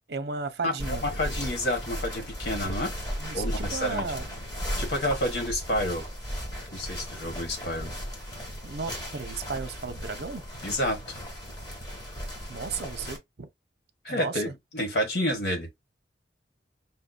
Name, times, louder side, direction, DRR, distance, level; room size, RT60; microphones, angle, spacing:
voice 1, 0.1-1.0 3.2-4.3 8.6-10.4 12.5-13.5 14.1-14.5, right 4 dB, 65° right, 0.7 m, -34 dB
voice 2, 0.6-2.9 3.3-4.1 4.8-6.1 6.7-8.0 10.6-11.1 14.0-15.7, left 1 dB, 70° left, 1.4 m, -29 dB
sound 1, 0.8-13.2, equal, 25° left, 1.6 m, -36 dB
5.6 x 2.7 x 2.3 m
head